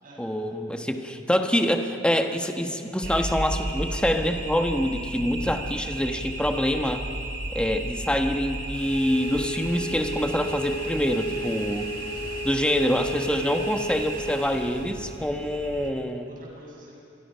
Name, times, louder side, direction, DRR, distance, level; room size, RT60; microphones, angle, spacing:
voice 1, 0.2-7.0 7.5-11.9 12.4-16.3, equal, 5° left, 5 dB, 1.2 m, -26 dB
sound 1, 3.0-15.9, right 2 dB, 65° right, 2.2 m, -34 dB
sound 2, 8.7-14.9, equal, 55° left, 5.7 m, -34 dB
voice 2, 11.2-12.4 16.2-17.0, equal, 45° right, -2 dB, 6.8 m, -48 dB
27.0 x 22.0 x 5.7 m, 2.6 s
head